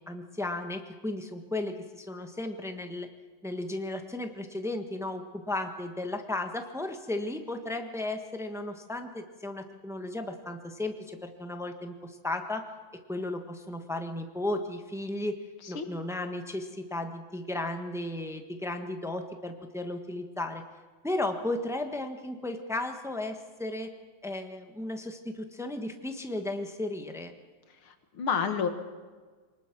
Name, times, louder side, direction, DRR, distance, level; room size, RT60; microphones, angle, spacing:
voice 1, 0.0-3.1 3.4-12.7 13.1-15.4 15.7-20.6 21.0-23.9 24.2-27.3, left 2 dB, ahead, 5 dB, 1.0 m, -35 dB
voice 2, 27.9-28.7, left 6 dB, 85° left, 7 dB, 2.5 m, -29 dB
24.0 x 19.5 x 6.1 m, 1.4 s
omnidirectional pair, 2.3 m